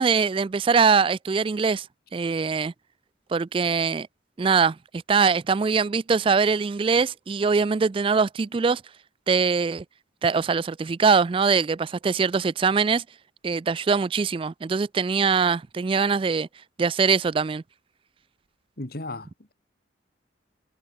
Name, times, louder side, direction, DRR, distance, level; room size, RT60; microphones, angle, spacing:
voice 1, 0.0-1.9 2.1-2.7 3.3-4.1 4.4-8.8 9.3-9.8 10.2-13.0 13.4-16.5 16.8-17.6, right 5 dB, 30° right, 0.3 m, -22 dB
voice 2, 18.8-19.5, left 2 dB, 50° left, 2.2 m, -35 dB
head